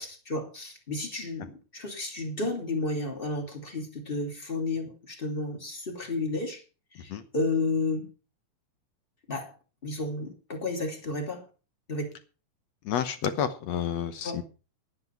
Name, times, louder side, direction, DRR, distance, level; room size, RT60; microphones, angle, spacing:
voice 1, 0.0-6.6 7.0-8.1 9.3-9.5 9.8-11.4 11.9-12.1 14.2-14.4, left 2 dB, 15° left, 3 dB, 2.5 m, -32 dB
voice 2, 12.9-14.4, left 8 dB, 65° left, 10 dB, 1.9 m, -30 dB
11.5 x 9.8 x 5.8 m, 0.35 s
omnidirectional pair, 3.7 m